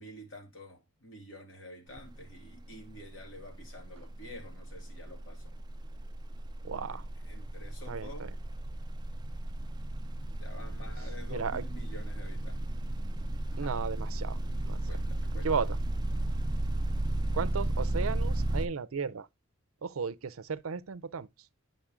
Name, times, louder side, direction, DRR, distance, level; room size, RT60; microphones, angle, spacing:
voice 1, 0.0-5.6 6.9-7.0 7.2-8.3 10.3-12.8 13.5-13.7 14.9-15.5, left 1 dB, 65° left, 2.6 m, -49 dB
sound 1, 1.9-2.2 2.5-18.7, right 1 dB, 20° right, 0.5 m, -34 dB
voice 2, 6.6-7.0 7.9-8.3 11.3-11.6 13.6-14.4 14.7-14.8 15.4-15.8 17.3-19.3 19.8-21.3, right 5 dB, 80° right, 0.6 m, -34 dB
10.5 x 5.3 x 3.6 m
head